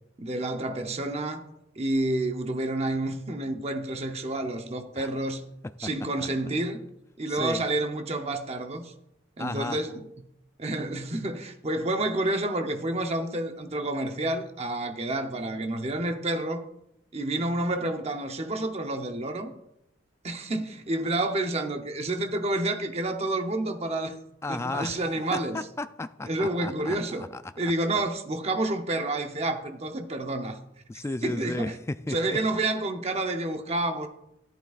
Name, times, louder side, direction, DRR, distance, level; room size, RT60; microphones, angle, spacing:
voice 1, 0.2-1.4 1.8-5.5 5.8-6.8 7.2-8.9 9.4-10.1 10.6-16.6 17.1-19.5 20.2-24.2 24.5-25.6 26.2-27.3 27.6-30.6 31.2-31.8 32.1-34.1, right 2 dB, 30° right, 0.8 m, -29 dB
voice 2, 7.3-7.6 9.4-9.8 24.4-25.0 25.3-27.4 27.9-28.0 30.9-32.4, left 2 dB, 15° left, 0.3 m, -34 dB
14.0 x 11.0 x 2.4 m
head